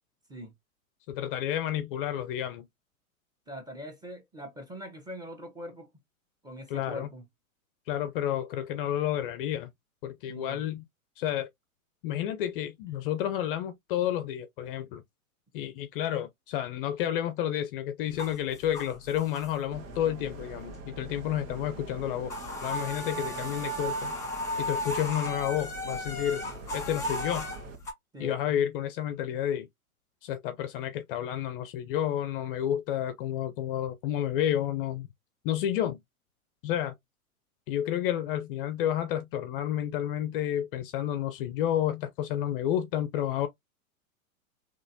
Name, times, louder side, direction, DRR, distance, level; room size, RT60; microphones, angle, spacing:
voice 1, 1.1-2.7 6.7-7.1 7.9-9.7 10.0-10.8 11.2-11.5 12.0-15.0 15.5-22.3 22.6-24.1 24.6-26.4 26.7-27.5 28.2-29.7 30.2-35.1 35.4-36.0 36.6-36.9 37.7-43.5, left 11 dB, 40° left, 0.5 m, -30 dB
voice 2, 3.5-5.9 6.4-7.2 10.2-10.6 23.0-23.1 28.1-28.6, equal, 10° right, 1.2 m, -42 dB
sound 1, 18.1-19.9 20.2-21.1 21.4-21.6 21.8-27.9, left 1 dB, 5° left, 1.7 m, -35 dB
sound 2, 19.7-27.8, right 3 dB, 60° right, 1.6 m, -44 dB
4.0 x 3.0 x 2.7 m
hypercardioid pair, 105°, 43 cm